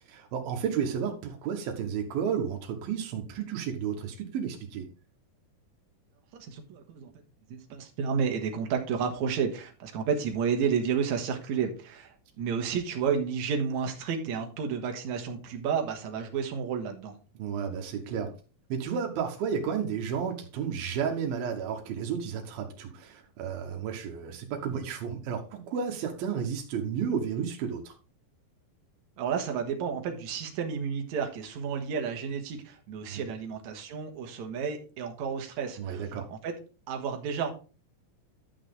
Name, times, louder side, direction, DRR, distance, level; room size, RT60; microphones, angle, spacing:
voice 1, 0.1-4.9 17.4-18.3 18.7-27.9 33.1-33.2 35.8-36.3, right 7 dB, 85° right, 2 dB, 3.1 m, -32 dB
voice 2, 6.3-7.1 7.5-17.2 29.2-36.5 36.9-37.5, right 6 dB, 60° right, 4 dB, 2.6 m, -31 dB
12.0 x 6.0 x 3.7 m, 0.34 s
omnidirectional pair, 4.1 m